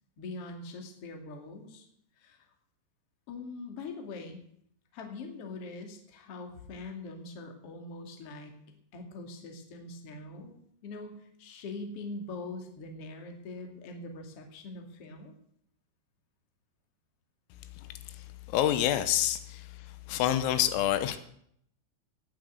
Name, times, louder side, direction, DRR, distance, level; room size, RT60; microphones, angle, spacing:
voice 1, 0.2-1.9 2.2-2.5 3.3-4.4 4.9-8.5 8.9-10.6 10.8-15.3, left 3 dB, 40° left, 3 dB, 2.2 m, -42 dB
voice 2, 18.5-19.7 20.1-21.2, left 12 dB, 85° left, 11 dB, 3.7 m, -27 dB
17.5 x 7.7 x 8.0 m, 0.68 s
omnidirectional pair, 5.9 m